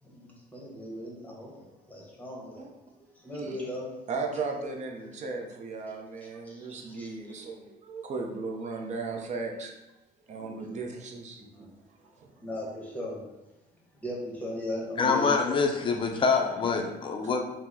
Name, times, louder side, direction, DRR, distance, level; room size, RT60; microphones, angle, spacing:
voice 1, 0.0-2.7 3.0-3.9 5.9-7.3 10.3-10.8 11.4-11.7 12.0-12.1 12.3-13.2 13.9-15.6, left 1 dB, 10° left, -3 dB, 0.9 m, -38 dB
voice 2, 4.1-9.7 10.3-11.7 12.2-12.3 15.9-16.0 16.3-16.5, right 4 dB, 45° right, 2 dB, 0.5 m, -36 dB
voice 3, 15.0-17.5, left 5 dB, 30° left, 4 dB, 0.4 m, -25 dB
2.8 x 2.0 x 3.5 m, 0.99 s
cardioid pair, 110°, 17 cm